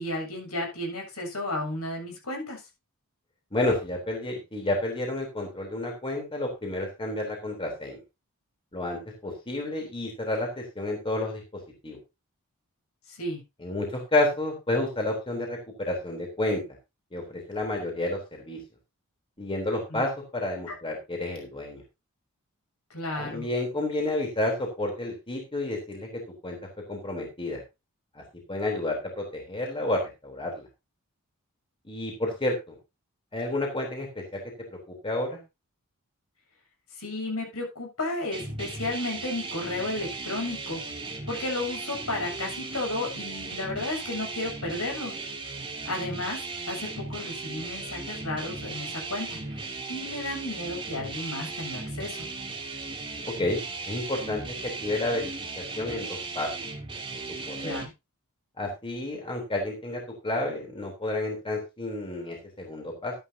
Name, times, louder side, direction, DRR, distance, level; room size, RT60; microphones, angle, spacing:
voice 1, 0.0-2.6 13.1-13.4 19.9-20.0 22.9-23.5 37.0-40.8 41.3-45.1 45.8-46.4 46.7-52.3 57.6-57.9, left 2 dB, 80° left, 1 dB, 7.3 m, -33 dB
voice 2, 3.5-8.0 8.7-11.4 11.8-12.0 13.6-16.6 17.1-18.6 19.4-21.8 23.1-26.6 26.9-27.6 28.2-28.3 28.5-30.6 31.9-32.7 33.3-34.4 34.7-35.4 53.3-55.3 55.6-56.5 57.1-57.2 57.5-57.8 58.6-63.1, left 2 dB, 25° left, 1 dB, 3.6 m, -30 dB
sound 1, 38.3-57.9, right 3 dB, 25° right, 2.9 m, -37 dB
13.0 x 11.5 x 2.8 m, 0.25 s
head